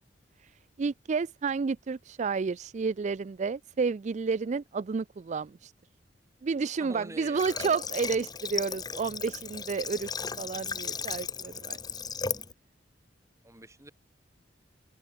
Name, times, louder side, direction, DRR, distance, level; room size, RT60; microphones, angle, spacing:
voice 1, 0.8-5.7 6.4-10.1 10.4-11.8, right 5 dB, 40° right, 0.4 m, -31 dB
voice 2, 6.8-7.7 13.4-13.9, right 1 dB, 15° right, 3.2 m, -45 dB
Water / Water tap faucet, 7.4-12.5, left 5 dB, 20° left, 0.9 m, -36 dB
open air
head